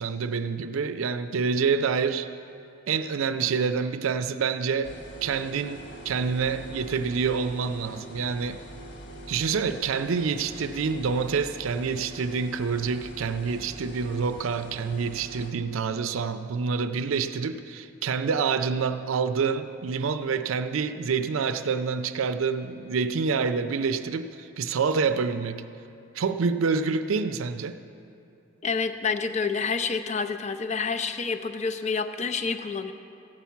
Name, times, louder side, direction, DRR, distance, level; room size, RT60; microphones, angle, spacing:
voice 1, 0.0-2.3 2.9-4.9 5.2-8.6 9.3-25.6 26.1-27.8, right 5 dB, 85° right, 10 dB, 0.4 m, -27 dB
sound 1, 4.8-15.5, right 1 dB, 60° left, 1.4 m, -43 dB
voice 2, 28.6-32.9, left 5 dB, 35° left, 8 dB, 0.6 m, -28 dB
15.0 x 5.8 x 8.3 m, 2.7 s
head